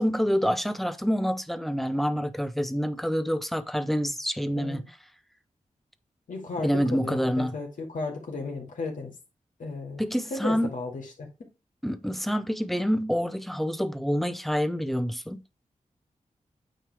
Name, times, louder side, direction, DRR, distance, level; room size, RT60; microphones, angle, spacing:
voice 1, 0.0-5.0 6.6-7.5 10.0-10.7 11.8-15.4, equal, ahead, 0.6 m, -27 dB
voice 2, 4.6-4.9 6.3-9.1 9.6-10.0 10.3-11.3, left 3 dB, 80° left, 2.3 m, -34 dB
9.0 x 3.2 x 4.7 m
wide cardioid pair, 85°, 13 cm